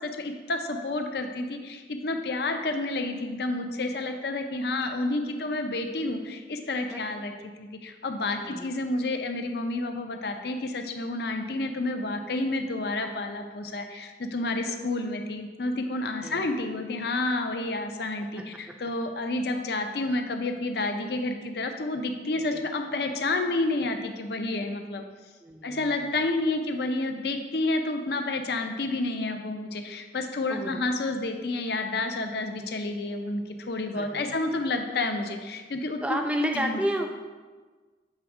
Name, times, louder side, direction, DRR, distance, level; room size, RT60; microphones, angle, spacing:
voice 1, 0.8-1.6 2.0-6.2 6.7-7.3 8.0-8.4 8.6-13.8 14.3-18.4 18.8-25.0 25.6-29.7 30.1-33.4 33.7-35.3 35.7-36.2 36.5-36.8, left 2 dB, 65° left, 5 dB, 0.5 m, -29 dB
voice 2, 25.4-25.9 30.5-30.8 34.0-34.4 36.0-37.1, equal, 5° right, 3 dB, 0.4 m, -30 dB
7.5 x 3.4 x 4.8 m, 1.4 s
head